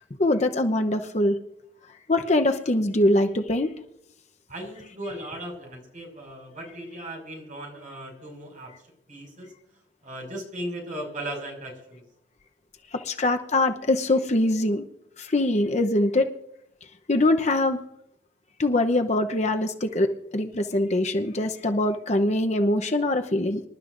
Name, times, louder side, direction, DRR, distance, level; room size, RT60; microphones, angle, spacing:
voice 1, 0.2-1.4 2.1-3.7 12.9-14.9 15.2-16.3 17.1-17.8 18.6-23.6, left 1 dB, 40° left, 6 dB, 0.8 m, -23 dB
voice 2, 4.5-8.7 9.1-9.5 10.0-12.0, right 1 dB, 45° right, 0 dB, 5.8 m, -37 dB
26.0 x 12.0 x 2.6 m, 0.78 s
head